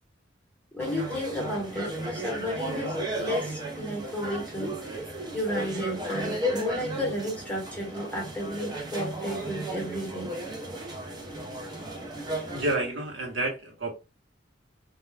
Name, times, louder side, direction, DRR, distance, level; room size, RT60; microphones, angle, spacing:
voice 1, 0.7-4.7 5.3-10.3, equal, 5° left, 1.0 m, -33 dB
sound 1, 0.8-12.8, right 1 dB, 20° right, 0.6 m, -34 dB
voice 2, 12.5-13.9, right 2 dB, 65° right, 0.9 m, -30 dB
2.3 x 2.2 x 3.2 m
head